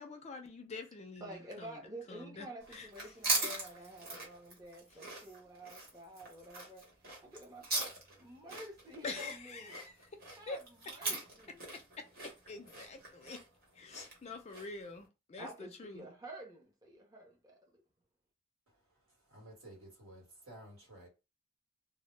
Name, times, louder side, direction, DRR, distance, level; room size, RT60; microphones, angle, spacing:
voice 1, 0.0-1.8 2.1-3.1 9.0-9.9 10.5-10.6 12.0-13.4 13.7-16.1, left 3 dB, 30° left, 0.3 m, -46 dB
voice 2, 1.2-9.8 10.4-11.6 15.4-17.8, right 1 dB, 15° right, 0.6 m, -50 dB
sound 1, 2.6-14.9, right 2 dB, 45° right, 1.0 m, -40 dB
voice 3, 19.3-21.1, right 1 dB, 85° right, 1.2 m, -53 dB
2.1 x 2.0 x 3.1 m
head